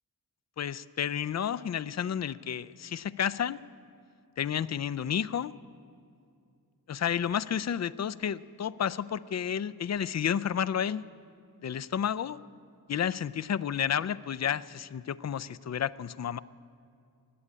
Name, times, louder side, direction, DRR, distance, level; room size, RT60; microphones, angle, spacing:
voice 1, 0.6-3.6 4.4-5.5 6.9-11.0 11.6-12.4 12.9-16.4, left 8 dB, 45° left, 16 dB, 0.4 m, -31 dB
15.5 x 8.7 x 9.8 m, 2.5 s
wide cardioid pair, 60°, 37 cm